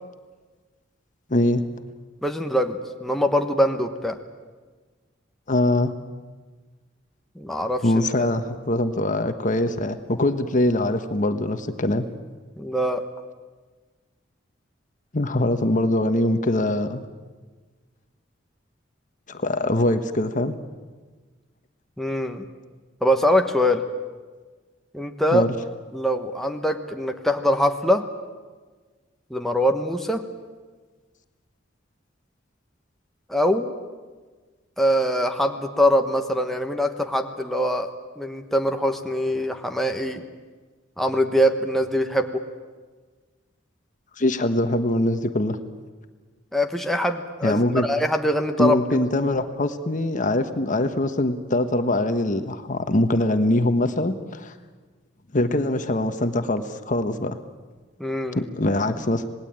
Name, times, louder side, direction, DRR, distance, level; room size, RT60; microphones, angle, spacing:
voice 1, 1.3-1.6 5.5-5.9 7.8-12.1 15.1-17.0 19.3-20.5 25.3-25.5 44.2-45.6 47.4-47.9 48.6-54.5 55.3-57.4 58.3-59.3, left 1 dB, 40° left, 9 dB, 1.3 m, -23 dB
voice 2, 2.2-4.2 7.4-7.8 8.2-8.3 12.6-13.0 22.0-22.4 23.0-23.8 24.9-25.4 25.9-28.1 29.3-30.2 33.3-33.7 34.8-37.9 38.2-40.2 41.0-42.4 46.5-48.8 58.0-58.4, equal, ahead, 4 dB, 1.2 m, -23 dB
26.5 x 19.5 x 8.9 m, 1.4 s
head